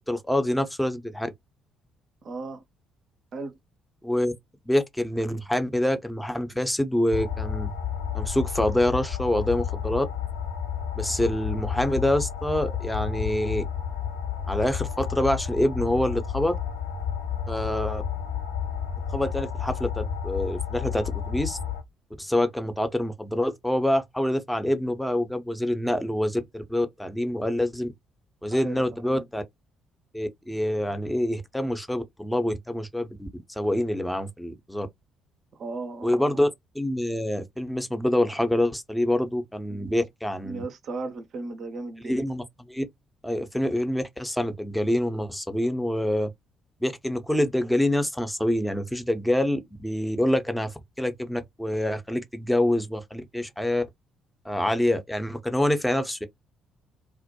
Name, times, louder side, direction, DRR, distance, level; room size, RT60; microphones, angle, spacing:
voice 1, 0.1-1.3 4.0-4.3 4.7-7.7 8.1-10.0 10.9-13.6 14.5-16.6 17.5-18.0 19.1-21.6 22.2-27.9 28.4-29.4 30.1-33.3 33.6-34.9 36.0-36.5 36.7-40.6 42.0-42.8 43.2-46.3 46.8-53.8 54.5-56.3, left 1 dB, 5° left, 0.5 m, -26 dB
voice 2, 2.2-2.6 3.3-3.6 28.5-29.3 35.5-36.4 39.7-39.9 40.4-42.2, right 3 dB, 50° right, 0.4 m, -36 dB
sound 1, 7.1-21.8, left 8 dB, 75° left, 0.6 m, -31 dB
2.2 x 2.1 x 2.7 m
figure-of-eight pair, 45°, 0 cm